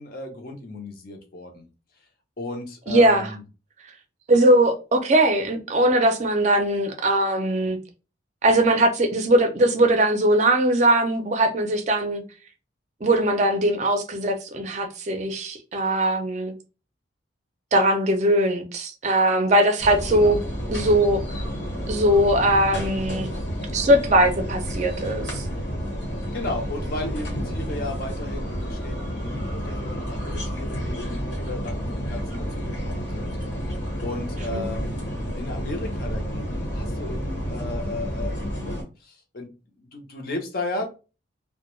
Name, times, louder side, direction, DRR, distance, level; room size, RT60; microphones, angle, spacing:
voice 1, 0.0-1.7 2.4-3.4 20.1-20.4 26.3-33.4 34.0-35.0 35.4-39.5 39.8-40.9, left 2 dB, 50° left, 0.6 m, -34 dB
voice 2, 2.9-3.3 4.3-7.8 8.4-12.2 13.0-16.5 17.7-20.4 20.7-21.2 21.9-23.3 23.7-25.5 34.5-34.7, right 1 dB, 40° right, 0.4 m, -20 dB
sound 1, 19.8-38.8, equal, 70° left, 1.2 m, -30 dB
2.2 x 2.1 x 3.0 m
head